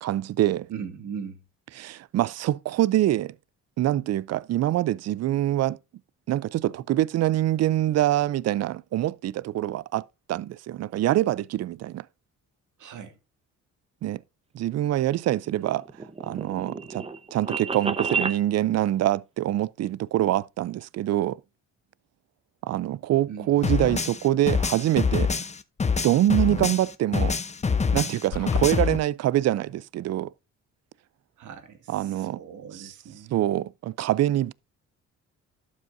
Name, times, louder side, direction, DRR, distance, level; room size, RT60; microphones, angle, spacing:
voice 1, 0.0-0.7 1.8-3.3 3.8-5.8 6.3-10.0 10.3-12.0 14.0-14.2 14.5-15.8 16.2-17.0 17.3-21.4 22.6-25.3 26.0-27.4 27.9-30.3 31.9-32.4 33.3-34.5, right 13 dB, 55° right, 0.5 m, -25 dB
voice 2, 0.7-1.4 12.8-13.2 23.3-23.6 31.4-33.5, right 7 dB, 75° right, 2.2 m, -39 dB
sound 1, 15.5-18.4, right 5 dB, 20° right, 0.9 m, -31 dB
sound 2, 23.6-26.9 27.1-29.0, left 5 dB, 20° left, 0.8 m, -25 dB
sound 3, 28.3-28.7, left 5 dB, 75° left, 1.5 m, -33 dB
12.0 x 8.3 x 2.6 m
cardioid pair, 90°, 30 cm